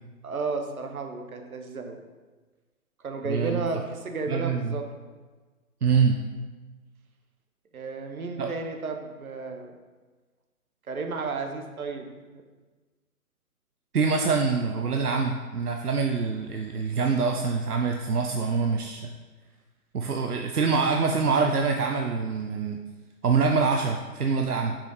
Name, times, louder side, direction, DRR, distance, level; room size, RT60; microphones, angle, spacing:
voice 1, 0.2-2.0 3.0-4.9 7.7-9.7 10.9-12.4, right 4 dB, 70° right, 4 dB, 1.1 m, -33 dB
voice 2, 3.2-3.6 4.3-4.7 5.8-6.2 8.4-8.5 13.9-19.1 19.9-22.8 23.2-24.8, right 5 dB, 85° right, 2 dB, 0.7 m, -25 dB
6.1 x 4.1 x 4.9 m, 1.3 s
figure-of-eight pair, 140°, 44 cm